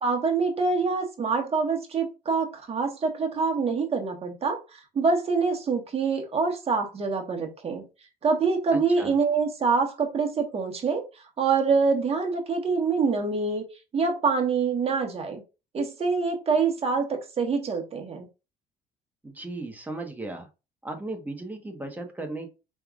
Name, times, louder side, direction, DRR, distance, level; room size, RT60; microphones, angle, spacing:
voice 1, 0.0-7.8 8.2-11.0 11.4-13.6 13.9-15.4 15.7-18.3, right 4 dB, 35° right, 1.3 m, -25 dB
voice 2, 8.7-9.2 19.2-20.5 20.8-22.5, right 2 dB, 10° right, 1.2 m, -36 dB
4.6 x 3.5 x 2.4 m
cardioid pair, 110°, 17 cm